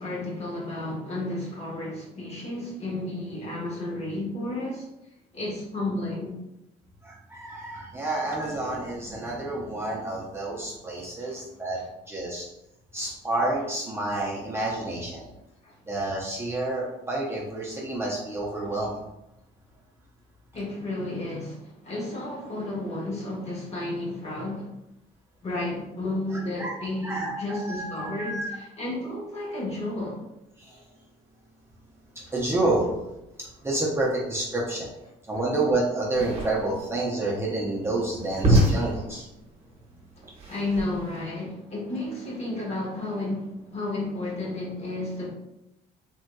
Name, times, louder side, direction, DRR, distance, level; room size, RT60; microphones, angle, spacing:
voice 1, 0.0-4.9 5.3-6.3 11.2-11.4 11.8-11.9 13.0-13.1 15.2-15.3 15.6-15.7 20.5-24.7 25.4-30.2 32.2-32.3 35.3-35.4 39.1-39.2 40.2-45.3, left 2 dB, 40° left, -4 dB, 1.2 m, -32 dB
voice 2, 7.1-11.8 12.1-12.4 12.9-15.2 15.9-19.0 26.6-26.7 27.0-28.6 32.3-32.9 33.6-34.9 35.3-39.2, right 2 dB, 15° right, -5 dB, 0.6 m, -29 dB
sound 1, 36.1-41.2, right 1 dB, 40° right, 1.0 m, -27 dB
3.5 x 2.7 x 2.2 m, 0.90 s
cardioid pair, 110°, 17 cm